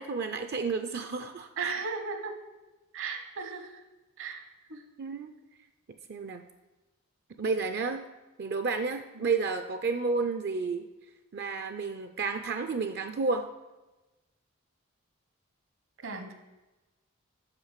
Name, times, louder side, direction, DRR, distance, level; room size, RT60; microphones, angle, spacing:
voice 1, 0.0-1.7 4.2-4.3 5.0-5.3 6.1-6.4 7.4-8.0 8.4-10.9 11.3-13.5, right 4 dB, 50° right, 8 dB, 0.5 m, -31 dB
voice 2, 1.6-2.4 2.9-3.8 4.2-4.8 16.0-16.3, right 4 dB, 65° right, 6 dB, 1.3 m, -36 dB
8.2 x 6.3 x 6.6 m, 1.1 s
head